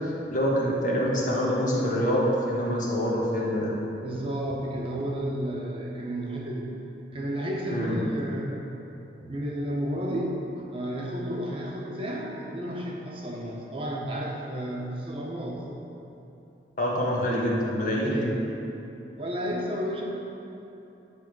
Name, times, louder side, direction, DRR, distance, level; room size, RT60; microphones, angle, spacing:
voice 1, 0.3-3.7 7.7-8.0 16.8-18.2, equal, 45° left, -5 dB, 1.4 m, -25 dB
voice 2, 4.0-6.7 7.1-8.6 9.2-15.6 17.9-18.3 19.2-20.0, equal, 30° right, -3 dB, 0.9 m, -32 dB
10.0 x 3.4 x 6.0 m, 2.9 s
head